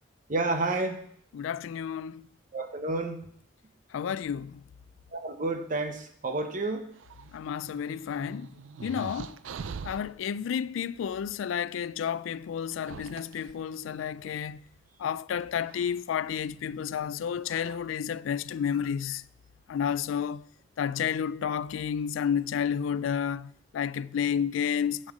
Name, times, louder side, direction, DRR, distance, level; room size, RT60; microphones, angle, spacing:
voice 1, 0.3-1.0 2.5-3.2 5.1-6.9, right 2 dB, 45° right, 1.0 m, -30 dB
voice 2, 1.3-2.3 3.9-4.6 7.3-8.5 8.8-9.4 9.8-14.6 15.0-19.2 19.7-20.4 20.8-25.1, left 8 dB, 80° left, 0.3 m, -31 dB
sound 1, 7.0-10.1 11.5-11.6 12.6-14.5 15.6-16.0 17.0-17.1 17.4-17.8, right 5 dB, 75° right, 0.4 m, -43 dB
7.8 x 7.2 x 5.0 m
head